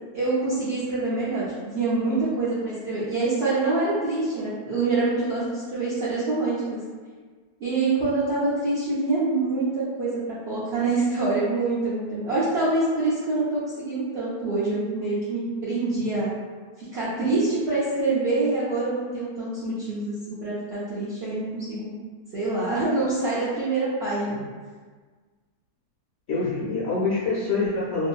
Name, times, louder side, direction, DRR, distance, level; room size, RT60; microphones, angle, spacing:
voice 1, 0.1-6.8 7.6-16.3 16.9-21.9 22.3-24.4, right 3 dB, 60° right, -10 dB, 0.7 m, -25 dB
voice 2, 26.3-28.1, left 3 dB, 60° left, -9 dB, 0.7 m, -26 dB
2.7 x 2.7 x 2.3 m, 1.5 s
omnidirectional pair, 1.7 m